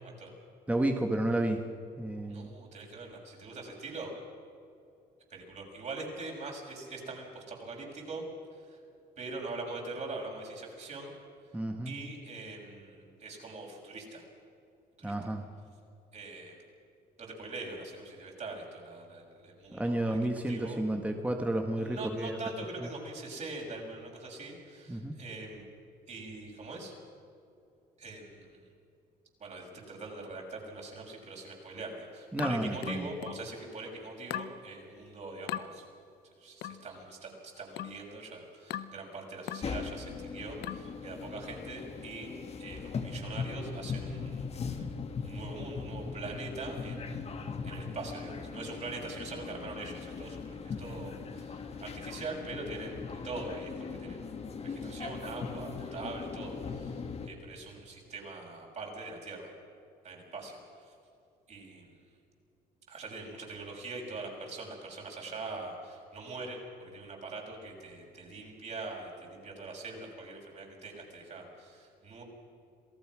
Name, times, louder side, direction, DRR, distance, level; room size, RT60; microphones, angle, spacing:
voice 1, 0.7-1.6 2.0-2.6 11.5-11.9 15.0-15.4 19.7-22.3 24.9-25.2 32.3-33.1, right 1 dB, 10° right, 4 dB, 1.6 m, -31 dB
voice 2, 2.3-4.1 5.3-8.2 8.5-8.8 9.2-11.1 11.5-11.6 11.8-14.2 15.0-15.1 16.1-16.6 17.2-20.8 21.8-25.6 26.1-26.9 28.0-28.6 29.4-35.9 36.4-42.3 42.6-47.2 47.6-54.3 54.6-59.5 60.0-60.9 61.5-62.0 62.9-72.2, right 3 dB, 45° right, 0 dB, 6.7 m, -43 dB
sound 1, 32.4-33.5 34.3-34.6 35.5-35.7 36.6-36.9 37.8-38.0 38.7-39.0 39.5-39.7 40.6-40.9, left 11 dB, 75° left, 0.9 m, -39 dB
sound 2, 39.6-57.3, left 5 dB, 40° left, 2.1 m, -39 dB
27.5 x 18.0 x 6.3 m, 2.6 s
cardioid pair, 110°, 17 cm